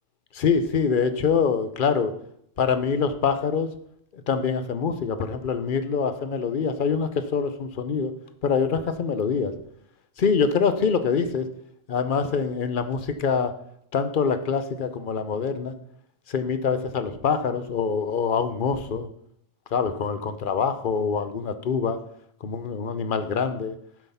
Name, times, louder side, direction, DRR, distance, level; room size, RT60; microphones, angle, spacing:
voice 1, 0.3-2.1 2.6-3.7 4.1-8.1 8.4-9.5 10.2-11.5 11.9-13.5 13.9-15.7 16.3-19.1 19.7-22.0 22.4-23.7, left 6 dB, 50° left, 10 dB, 0.8 m, -25 dB
7.4 x 5.8 x 5.6 m, 0.72 s
omnidirectional pair, 1.2 m